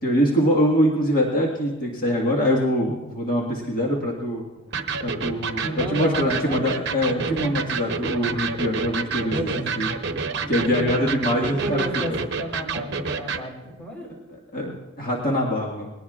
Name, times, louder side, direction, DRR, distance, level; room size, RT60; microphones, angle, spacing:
voice 1, 0.0-4.4 5.0-9.4 9.8-9.9 10.5-11.8 14.5-15.9, equal, 45° left, -3 dB, 1.8 m, -23 dB
Electric guitar, 4.7-13.5, right 5 dB, 55° right, 0.9 m, -29 dB
voice 2, 5.6-6.6 7.3-7.5 9.3-9.8 10.7-11.1 11.4-14.1 15.4-15.5, equal, 5° left, -2 dB, 4.1 m, -32 dB
21.0 x 18.5 x 2.5 m, 1.1 s
head